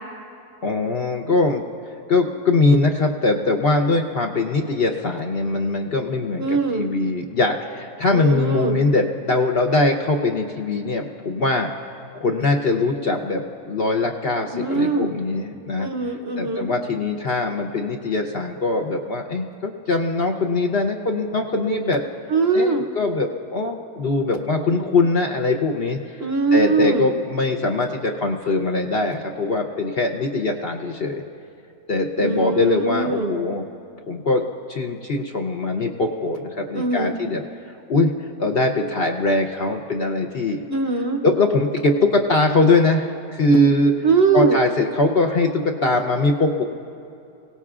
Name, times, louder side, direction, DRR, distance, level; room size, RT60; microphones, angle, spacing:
voice 1, 0.6-1.6 2.1-11.7 12.1-15.9 16.4-22.0 22.5-26.2 26.5-31.2 31.9-33.7 34.1-34.4 34.7-37.4 37.9-40.6 41.2-43.9 44.3-46.6, left 2 dB, 55° left, 3 dB, 0.7 m, -21 dB
voice 2, 6.4-6.8 8.1-8.8 14.5-15.1 15.8-16.7 22.3-22.9 26.2-27.1 32.2-33.3 36.7-37.2 40.7-41.2 44.0-44.6, right 3 dB, 50° right, 4 dB, 0.8 m, -21 dB
24.5 x 17.5 x 2.4 m, 2.7 s
omnidirectional pair, 1.6 m